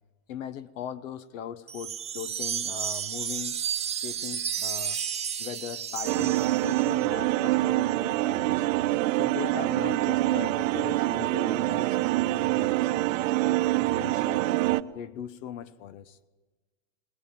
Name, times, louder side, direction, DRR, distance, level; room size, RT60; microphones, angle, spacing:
voice 1, 0.3-3.6 3.9-5.0 5.4-8.7 9.1-13.3 13.8-14.4 14.9-16.2, left 9 dB, 75° left, 14 dB, 1.2 m, -40 dB
sound 1, 1.7-7.0, right 8 dB, 15° right, 0.9 m, -32 dB
sound 2, 6.1-14.8, right 17 dB, 75° right, 1.0 m, -25 dB
21.5 x 19.5 x 9.4 m, 1.2 s
supercardioid pair, 135°, 39 cm